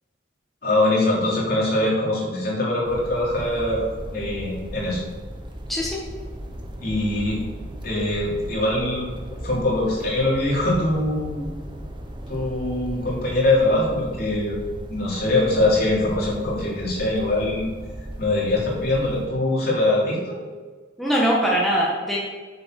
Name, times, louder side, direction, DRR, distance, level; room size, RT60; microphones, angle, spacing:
voice 1, 0.6-5.0 6.8-7.4 7.8-11.5 12.3-14.6 14.9-17.7 18.2-20.4, left 1 dB, 55° left, -5 dB, 3.4 m, -23 dB
sound 1, 2.8-19.3, equal, 25° right, 1.1 m, -37 dB
voice 2, 5.7-6.0 21.0-22.2, equal, ahead, -5 dB, 1.5 m, -21 dB
8.2 x 6.8 x 6.0 m, 1.4 s
head